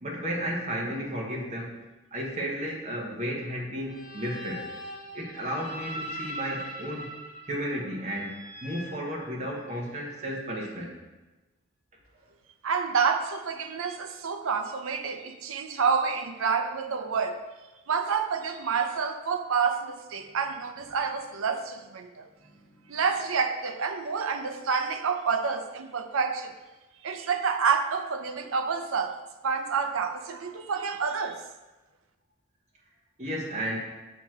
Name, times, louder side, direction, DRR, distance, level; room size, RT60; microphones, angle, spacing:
voice 1, 0.0-1.8 2.1-4.6 5.1-7.1 7.5-11.0 20.3-20.4 22.4-23.0 33.2-33.8, equal, 35° right, 1.1 m, -33 dB
sound 1, 3.8-9.8, equal, 40° left, 0.7 m, -41 dB
voice 2, 12.6-17.4 17.9-22.3 22.9-26.6 27.0-29.2 29.4-31.4, right 5 dB, 85° right, 0.6 m, -28 dB
7.0 x 3.0 x 5.9 m
head